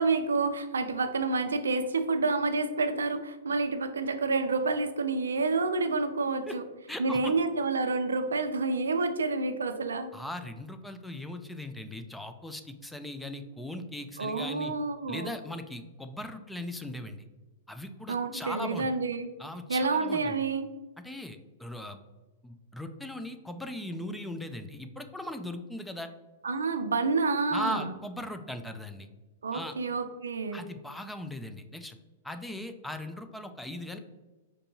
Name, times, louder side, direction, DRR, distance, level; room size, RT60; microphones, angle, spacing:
voice 1, 0.0-6.6 7.0-10.1 14.2-15.3 18.1-19.3 19.7-20.7 26.4-27.9 29.4-30.7, right 3 dB, 85° right, 9 dB, 0.4 m, -29 dB
voice 2, 6.9-7.4 10.1-14.7 15.1-17.2 17.7-18.9 19.4-20.4 21.0-22.0 22.4-26.1 27.5-29.1 29.5-29.7 30.5-32.0 32.2-34.0, left 1 dB, 5° left, 7 dB, 0.3 m, -39 dB
4.6 x 2.6 x 2.7 m, 1.2 s
hypercardioid pair, 120°, 0 cm